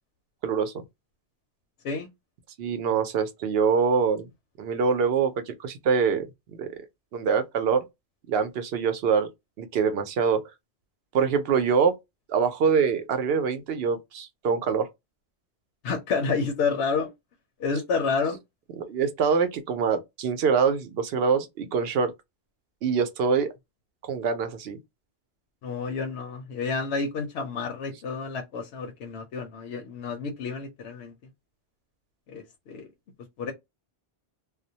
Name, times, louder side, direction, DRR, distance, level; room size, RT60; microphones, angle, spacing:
voice 1, 0.4-0.8 2.6-4.3 4.6-6.7 7.1-7.8 8.3-9.3 9.6-10.4 11.1-12.0 12.3-14.9 18.8-22.1 22.8-23.5 24.0-24.8, right 6 dB, 70° right, 0.8 m, -24 dB
voice 2, 15.8-17.1 17.6-18.4 25.6-31.1 32.3-32.9 33.4-33.5, left 4 dB, 80° left, 0.8 m, -29 dB
2.3 x 2.1 x 2.7 m
omnidirectional pair, 1.1 m